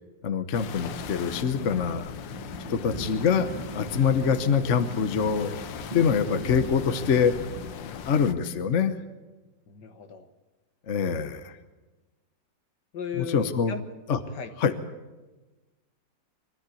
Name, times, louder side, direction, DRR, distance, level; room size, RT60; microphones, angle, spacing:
voice 1, 0.2-2.1 2.7-3.5 3.7-5.6 5.9-7.3 8.0-8.9 10.9-11.5 13.2-13.7 14.1-14.2 14.6-14.7, left 6 dB, 45° left, 10 dB, 1.1 m, -24 dB
sound 1, 0.5-8.3, left 9 dB, 85° left, 1.6 m, -39 dB
sound 2, 0.8-2.0 2.9-4.4 4.9-7.1, right 1 dB, 25° right, 2.0 m, -40 dB
sound 3, 2.3-7.7, right 3 dB, 60° right, 2.8 m, -43 dB
voice 2, 9.7-10.3 12.9-13.8 14.3-14.5, left 6 dB, 65° left, 8 dB, 1.9 m, -36 dB
23.0 x 13.5 x 8.4 m, 1.2 s
omnidirectional pair, 2.0 m